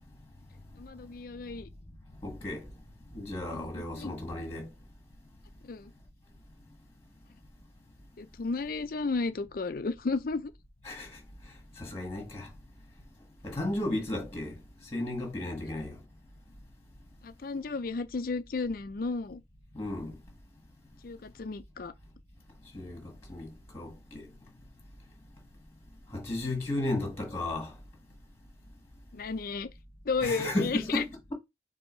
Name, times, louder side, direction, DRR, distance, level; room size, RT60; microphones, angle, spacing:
voice 1, 0.8-1.7 3.5-4.1 5.6-5.9 8.2-10.5 17.2-19.4 21.0-21.9 29.1-29.7 30.1-31.0, left 4 dB, 55° left, 0.5 m, -33 dB
voice 2, 2.2-2.7 3.1-4.7 10.8-11.1 11.8-12.5 13.4-14.6 14.9-16.0 19.7-20.1 22.7-24.3 26.1-27.7 30.2-31.0, left 1 dB, 15° left, 1.4 m, -34 dB
4.5 x 2.8 x 4.3 m
head